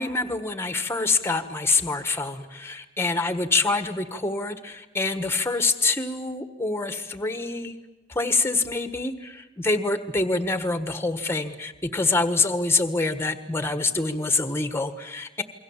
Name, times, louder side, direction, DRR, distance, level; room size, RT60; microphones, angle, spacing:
voice 1, 0.0-7.8 8.1-15.4, left 3 dB, 10° left, 9 dB, 1.4 m, -26 dB
28.0 x 22.5 x 7.3 m, 1.1 s
head